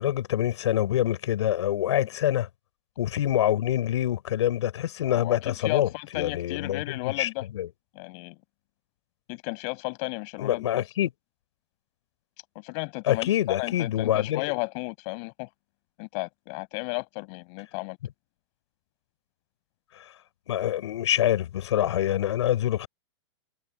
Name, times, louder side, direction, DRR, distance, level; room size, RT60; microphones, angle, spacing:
voice 1, 0.0-2.5 3.0-7.3 7.5-7.7 10.4-11.1 13.0-14.5 20.0-20.1 20.5-22.9, left 12 dB, 65° left, 7.4 m, -26 dB
voice 2, 5.1-7.5 7.9-8.4 9.3-10.8 12.5-15.5 16.0-18.0, left 36 dB, 35° left, 7.6 m, -33 dB
hypercardioid pair, 155°, 16 cm